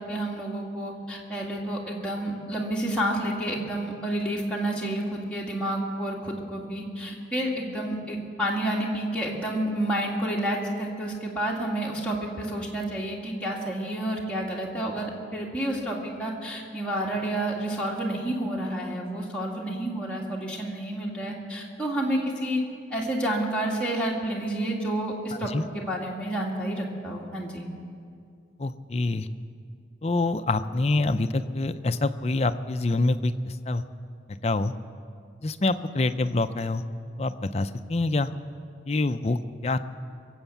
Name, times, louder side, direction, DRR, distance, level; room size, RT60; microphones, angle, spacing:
voice 1, 0.0-22.6 22.9-27.7, right 1 dB, 5° left, -4 dB, 2.0 m, -30 dB
voice 2, 28.6-29.3 30.0-33.8 34.4-34.7 35.4-36.8 37.2-38.3 38.9-39.8, left 2 dB, 35° left, 10 dB, 0.5 m, -26 dB
23.0 x 8.0 x 7.2 m, 2.4 s
head